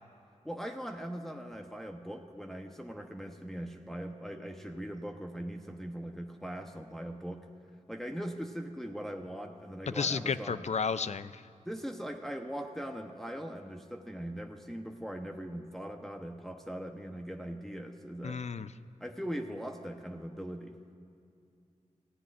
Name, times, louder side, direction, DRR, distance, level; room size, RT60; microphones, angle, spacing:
voice 1, 0.4-7.5 7.9-10.7 11.7-18.4 19.0-20.8, equal, 5° left, 3 dB, 0.9 m, -40 dB
voice 2, 9.9-11.4 18.2-18.7, left 5 dB, 60° left, 13 dB, 0.5 m, -32 dB
28.5 x 15.5 x 2.5 m, 2.5 s
cardioid pair, 55°, 13 cm